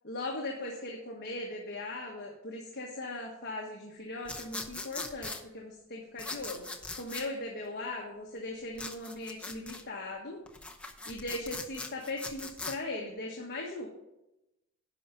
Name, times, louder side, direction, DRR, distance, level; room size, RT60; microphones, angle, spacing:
voice 1, 0.0-6.6 6.9-10.4 11.0-13.9, left 2 dB, 50° left, -1 dB, 1.4 m, -39 dB
sound 1, 4.3-5.4 6.2-7.3 8.8-9.8 10.5-12.8, left 3 dB, 5° left, 0.8 m, -40 dB
10.5 x 5.7 x 5.2 m, 0.90 s
head